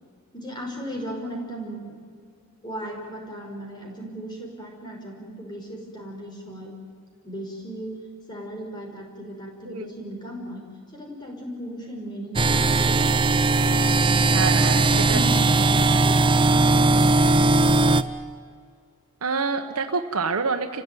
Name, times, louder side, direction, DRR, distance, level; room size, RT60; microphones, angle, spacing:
voice 1, 0.3-2.0 2.6-6.7 7.2-13.0 13.3-17.9, equal, 20° left, 0 dB, 5.6 m, -36 dB
sound 1, 12.4-18.0, right 3 dB, 20° right, 0.6 m, -19 dB
voice 2, 14.3-15.2 19.2-20.8, right 4 dB, 85° right, 5 dB, 1.2 m, -27 dB
29.5 x 16.0 x 9.5 m, 2.1 s
head